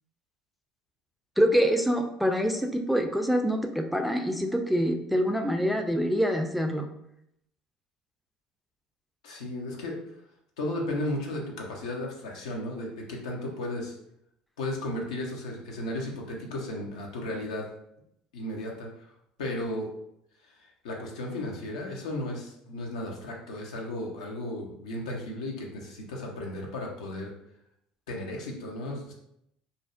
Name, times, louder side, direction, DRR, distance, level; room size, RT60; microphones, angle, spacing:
voice 1, 1.4-6.9, equal, ahead, 4 dB, 0.3 m, -25 dB
voice 2, 9.2-10.0 10.6-13.9 14.6-17.7 18.3-19.1 19.4-19.9 20.5-27.3 28.1-29.1, left 1 dB, 85° left, -1 dB, 0.5 m, -34 dB
2.5 x 2.0 x 2.4 m, 0.77 s
hypercardioid pair, 65°, 3 cm